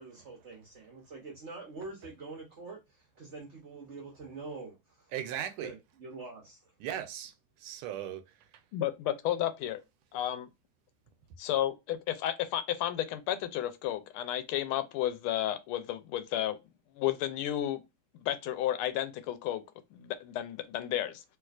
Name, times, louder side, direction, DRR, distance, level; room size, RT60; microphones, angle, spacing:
voice 1, 0.0-5.1 5.6-6.6, right 3 dB, 55° right, 0.8 m, -45 dB
voice 2, 5.1-5.7 6.8-8.2, right 10 dB, 85° right, 1.5 m, -37 dB
voice 3, 8.7-9.8 10.1-10.5 11.4-16.6 17.0-17.8 18.2-19.6 19.9-21.2, left 12 dB, 85° left, 1.5 m, -32 dB
3.3 x 3.1 x 2.3 m
omnidirectional pair, 2.3 m